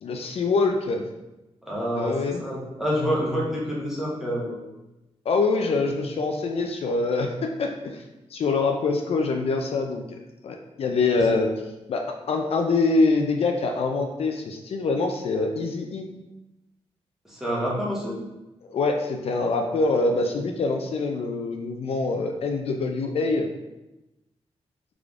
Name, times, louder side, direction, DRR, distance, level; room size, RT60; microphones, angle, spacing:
voice 1, 0.0-1.0 2.0-2.4 5.3-8.0 8.3-10.2 10.4-11.5 11.9-16.1 18.7-23.5, left 3 dB, 65° left, 3 dB, 0.4 m, -24 dB
voice 2, 1.6-4.6 17.2-18.2, equal, 5° right, -6 dB, 1.2 m, -27 dB
3.7 x 3.4 x 3.6 m, 1.0 s
wide cardioid pair, 120°, 11 cm